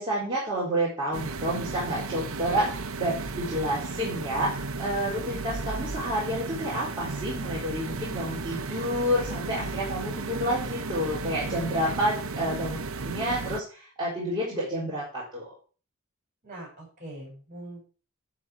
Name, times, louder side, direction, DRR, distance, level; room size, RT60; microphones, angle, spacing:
voice 1, 0.0-15.4, equal, 20° right, -8 dB, 4.0 m, -29 dB
sound 1, 1.1-13.6, right 3 dB, 80° right, 0.9 m, -34 dB
voice 2, 16.4-17.8, right 1 dB, 40° right, -1 dB, 6.0 m, -41 dB
11.5 x 4.5 x 6.1 m, 0.37 s
head